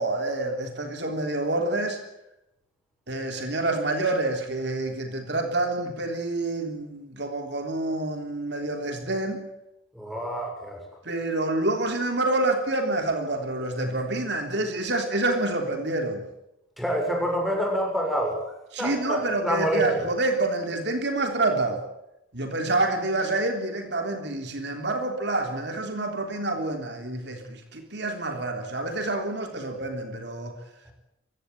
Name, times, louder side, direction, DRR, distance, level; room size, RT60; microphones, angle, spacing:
voice 1, 0.0-2.0 3.1-9.4 11.0-16.3 18.7-21.8 22.3-30.5, right 2 dB, 60° right, 5 dB, 3.5 m, -27 dB
voice 2, 9.9-10.9 16.8-20.0, right 1 dB, ahead, 1 dB, 7.0 m, -27 dB
23.5 x 16.5 x 9.3 m, 0.88 s
head